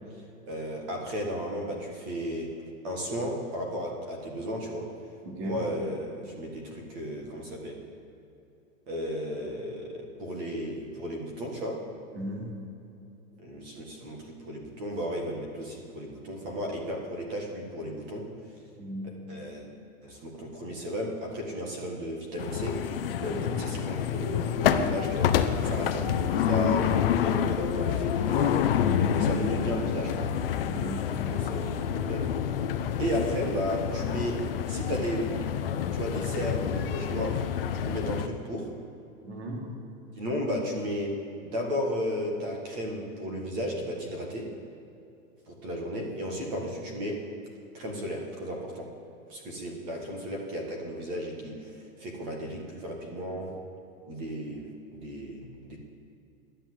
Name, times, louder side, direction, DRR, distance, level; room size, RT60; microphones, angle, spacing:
voice 1, 0.5-2.5 2.8-4.9 5.4-7.8 8.9-11.8 13.4-18.3 19.3-19.6 20.0-22.8 23.2-25.3 25.6-26.9 27.1-28.6 29.2-30.3 31.2-32.2 33.0-34.4 34.7-35.2 35.9-37.3 37.8-38.7 40.2-41.1 41.4-44.5 45.5-47.2 47.7-48.9 49.3-53.5 54.1-54.6 54.9-55.8, equal, 30° right, 1 dB, 1.7 m, -34 dB
voice 2, 5.2-5.6 12.1-12.5 18.8-19.1 23.3-23.6 30.7-31.0 39.2-39.7, right 1 dB, 50° right, -1 dB, 3.0 m, -36 dB
sound 1, 22.4-38.3, left 8 dB, 45° left, 0.5 m, -28 dB
11.0 x 8.7 x 7.8 m, 2.7 s
supercardioid pair, 180°, 43 cm